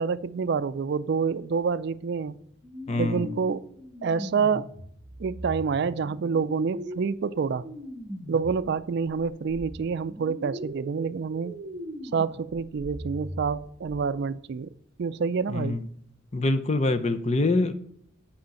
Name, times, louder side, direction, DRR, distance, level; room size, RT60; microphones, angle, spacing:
voice 1, 0.0-2.4 3.0-3.6 4.0-4.7 5.2-7.7 8.3-11.5 12.1-14.7 15.0-15.8, right 5 dB, 55° right, 15 dB, 0.4 m, -27 dB
sound 1, 2.6-8.7 9.0-14.0, equal, 25° right, 1.2 m, -40 dB
voice 2, 2.9-3.4 15.5-15.9 16.3-17.7, left 2 dB, 35° left, 11 dB, 0.6 m, -25 dB
7.9 x 5.0 x 7.0 m, 0.67 s
head